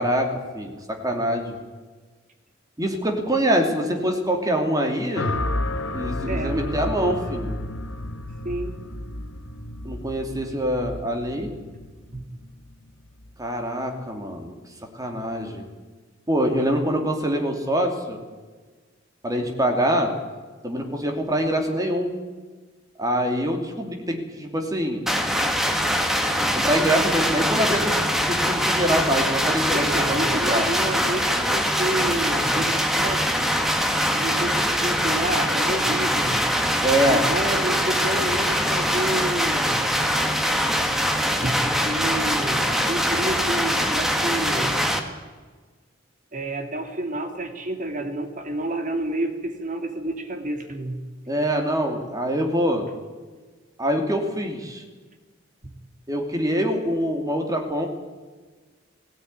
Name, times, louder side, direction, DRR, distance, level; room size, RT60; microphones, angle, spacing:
voice 1, 0.0-1.6 2.8-5.3 5.9-7.5 9.8-11.5 13.4-14.5 14.9-15.7 16.3-18.2 19.2-20.1 20.6-22.2 23.0-25.0 26.5-28.0 28.3-30.6 36.8-37.3 51.3-52.9 53.8-54.8 56.1-57.9, equal, 20° right, 3 dB, 2.9 m, -24 dB
sound 1, 5.1-13.4, left 1 dB, 80° left, 1.3 m, -31 dB
voice 2, 6.3-7.4 8.4-8.8 12.1-12.3 29.7-33.5 34.1-36.5 37.1-39.9 41.4-44.8 46.3-51.0 55.6-55.7, right 1 dB, 40° right, 5 dB, 2.5 m, -30 dB
sound 2, 25.1-45.0, equal, ahead, 1.8 m, -23 dB
17.0 x 17.0 x 9.7 m, 1.4 s
head